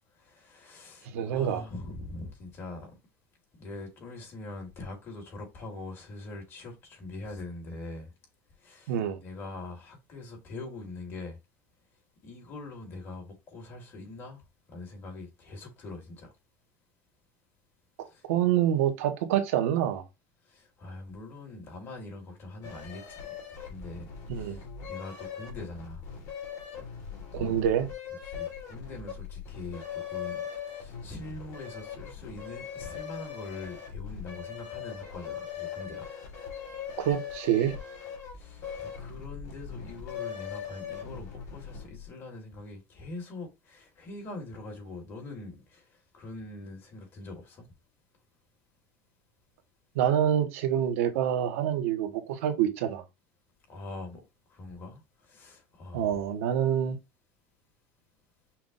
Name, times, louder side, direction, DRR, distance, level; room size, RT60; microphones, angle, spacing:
voice 1, 0.2-2.9 3.6-8.1 8.6-11.4 12.2-14.4 14.7-16.3 18.1-18.2 20.5-23.2 23.6-26.0 27.3-27.6 28.3-36.1 38.4-45.9 46.1-47.7 53.7-54.2 54.5-56.1, left 2 dB, 30° left, 2.1 m, -43 dB
voice 2, 1.0-1.6 8.9-9.2 18.3-20.0 24.3-24.6 27.3-27.9 37.0-37.7 49.9-53.0 55.9-57.0, right 10 dB, 90° right, 1.1 m, -26 dB
sound 1, 22.6-42.1, left 8 dB, 45° left, 2.5 m, -40 dB
5.9 x 2.4 x 3.8 m
supercardioid pair, 140°, 7 cm